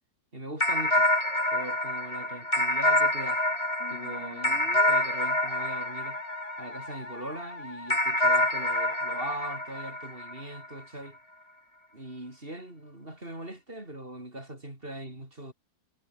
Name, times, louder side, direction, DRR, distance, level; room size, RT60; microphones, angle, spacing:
voice 1, 0.3-1.1 1.5-3.4 3.9-6.2 6.6-11.2 11.9-15.5, right 1 dB, 30° right, 7.6 m, -40 dB
sound 1, 0.6-7.2 7.9-10.7, left 1 dB, 15° left, 3.8 m, -27 dB
Musical instrument, 3.8-9.0, left 3 dB, 35° left, 3.2 m, -44 dB
omnidirectional pair, 1.9 m